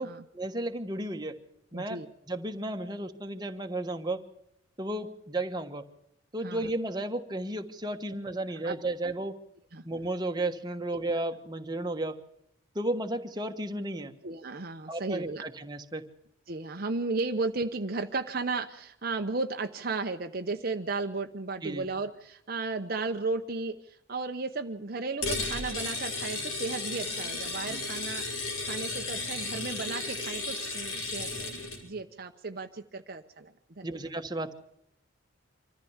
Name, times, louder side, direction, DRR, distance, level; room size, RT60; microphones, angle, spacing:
voice 1, 0.0-1.4 1.7-2.0 2.3-4.2 4.8-5.8 6.3-9.4 9.8-12.2 12.7-14.1 14.9-16.0 21.6-21.8 27.7-27.8 33.8-34.5, right 1 dB, 20° right, 5 dB, 1.4 m, -33 dB
voice 2, 1.7-2.1 6.4-6.7 8.6-8.8 9.7-9.8 14.2-15.4 16.5-31.6 31.8-34.0, right 3 dB, 50° right, 6 dB, 0.9 m, -34 dB
sound 1, 25.2-31.8, left 3 dB, 85° left, 5.7 m, -34 dB
25.0 x 14.5 x 7.2 m, 0.76 s
head